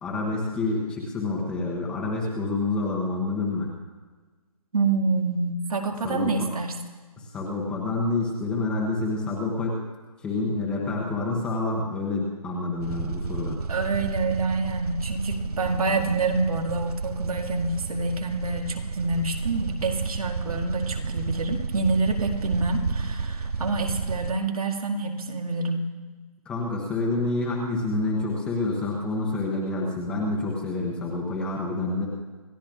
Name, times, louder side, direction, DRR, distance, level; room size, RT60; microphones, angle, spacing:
voice 1, 0.0-3.7 6.0-6.5 7.2-9.8 10.2-13.6 26.5-32.1, left 2 dB, 5° left, -3 dB, 0.8 m, -28 dB
voice 2, 4.7-6.7 13.7-25.9, right 3 dB, 70° right, 3 dB, 2.0 m, -27 dB
sound 1, 12.8-24.3, right 4 dB, 85° right, 0.6 m, -31 dB
28.0 x 13.0 x 2.4 m, 1.3 s
hypercardioid pair, 165°, 19 cm